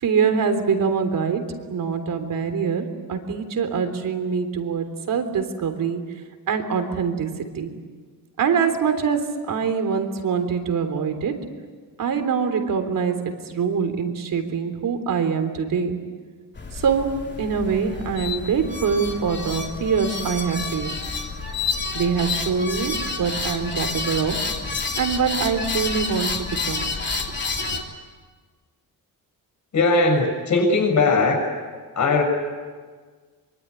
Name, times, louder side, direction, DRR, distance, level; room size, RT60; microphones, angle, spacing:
voice 1, 0.0-6.0 6.5-7.7 8.4-11.4 12.0-16.0 16.7-20.9 21.9-24.5 25.0-26.9 27.7-27.8, right 6 dB, 60° right, 8 dB, 3.5 m, -24 dB
sound 1, 16.6-27.8, left 4 dB, 30° left, 3.0 m, -29 dB
voice 2, 29.7-31.4 32.0-32.2, left 3 dB, 50° left, 0 dB, 7.0 m, -19 dB
24.5 x 24.0 x 9.8 m, 1.5 s
cardioid pair, 135°, 37 cm